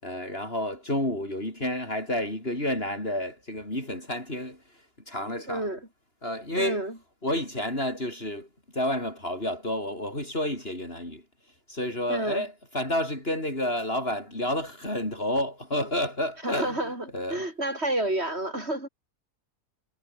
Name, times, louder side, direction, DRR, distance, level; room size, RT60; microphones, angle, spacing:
voice 1, 0.0-4.6 5.1-5.7 6.2-6.8 7.2-8.5 8.7-11.2 11.7-16.8 17.1-17.5, left 1 dB, 40° left, 7.7 m, -30 dB
voice 2, 5.5-5.8 6.6-7.0 12.1-12.4 16.4-18.9, right 1 dB, 45° right, 6.8 m, -30 dB
omnidirectional pair, 1.5 m